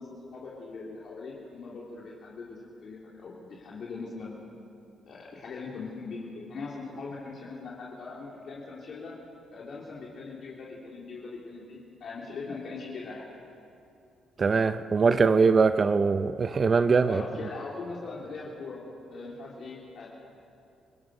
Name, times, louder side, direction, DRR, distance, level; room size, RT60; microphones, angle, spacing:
voice 1, 0.0-4.4 5.1-9.1 9.5-13.2 17.1-18.8 19.1-20.1, left 4 dB, 60° left, -5 dB, 3.4 m, -40 dB
voice 2, 14.4-17.2, right 4 dB, 40° right, 11 dB, 0.7 m, -22 dB
29.5 x 17.5 x 6.6 m, 2.7 s
cardioid pair, 90°, 0 cm